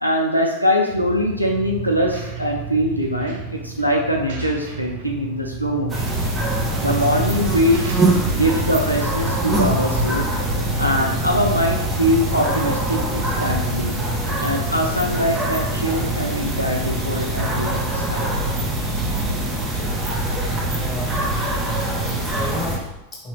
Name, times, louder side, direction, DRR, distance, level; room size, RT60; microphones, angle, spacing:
voice 1, 0.0-6.2 6.8-7.9 8.3-10.3 10.8-14.0 14.4-18.3, equal, 90° left, 0 dB, 0.4 m, -22 dB
sound 1, 0.9-10.6, right 5 dB, 55° right, 0.6 m, -34 dB
sound 2, 5.9-22.8, right 1 dB, 20° right, 0.7 m, -23 dB
voice 2, 20.7-21.2 21.8-23.3, left 1 dB, 25° left, -1 dB, 1.2 m, -33 dB
3.8 x 2.8 x 3.2 m, 0.90 s
figure-of-eight pair, 90°, 0 cm